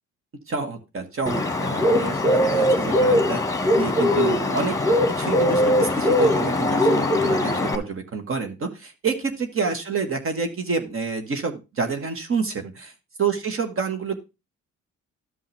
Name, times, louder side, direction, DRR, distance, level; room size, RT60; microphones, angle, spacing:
voice 1, 0.5-3.4 3.8-4.8 5.2-12.9 13.2-14.2, right 5 dB, 45° right, 6 dB, 1.6 m, -28 dB
Bird, 1.3-7.8, left 1 dB, 10° left, 1.5 m, -21 dB
12.5 x 5.6 x 3.3 m, 0.26 s
cardioid pair, 90°, 30 cm